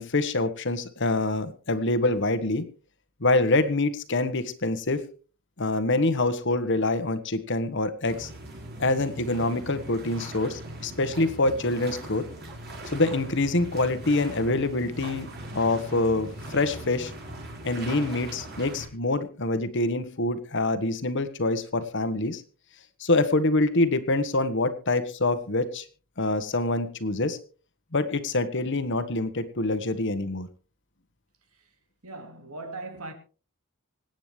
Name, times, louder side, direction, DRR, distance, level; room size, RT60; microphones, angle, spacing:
voice 1, 0.0-2.7 3.2-5.0 5.6-8.3 8.8-12.3 12.8-17.1 17.6-22.4 23.0-25.8 26.2-27.4 27.9-30.5, left 2 dB, 55° left, 1.3 m, -25 dB
sound 1, 8.0-18.9, right 1 dB, 50° right, 4.9 m, -40 dB
voice 2, 32.0-33.1, right 2 dB, 90° right, 2.8 m, -39 dB
25.5 x 9.1 x 3.3 m
head